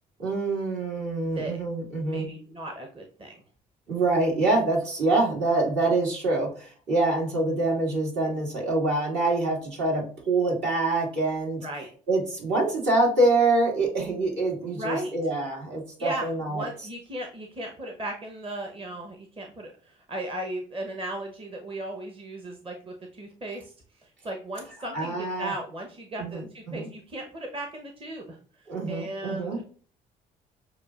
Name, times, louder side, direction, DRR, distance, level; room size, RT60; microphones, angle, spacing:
voice 1, 0.2-2.3 3.9-11.7 12.1-16.6 24.9-25.5 26.2-26.9 28.7-29.6, right 2 dB, 65° right, -2 dB, 2.1 m, -25 dB
voice 2, 1.2-1.6 2.0-3.3 11.6-11.9 14.6-15.1 16.0-29.6, right 1 dB, 30° right, 3 dB, 0.9 m, -36 dB
6.5 x 2.4 x 2.4 m, 0.42 s
hypercardioid pair, 60°, 19 cm